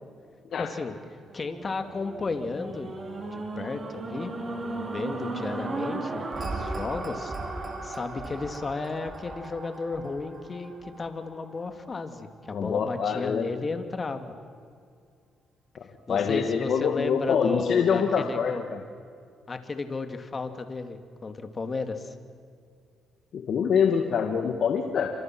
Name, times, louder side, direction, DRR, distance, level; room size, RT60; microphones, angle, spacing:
voice 1, 0.6-1.0 1.3-2.9 3.3-4.3 4.7-7.3 7.8-14.3 16.1-18.6 19.5-22.1, left 3 dB, 35° left, 7 dB, 2.5 m, -33 dB
sound 1, 1.3-11.6 12.2-12.3, right 2 dB, 35° right, 5.0 m, -36 dB
voice 2, 12.5-13.5 16.1-18.8 23.3-25.1, left 6 dB, 65° left, 4 dB, 2.0 m, -25 dB
29.0 x 26.0 x 6.2 m, 2.2 s
cardioid pair, 90°, 0 cm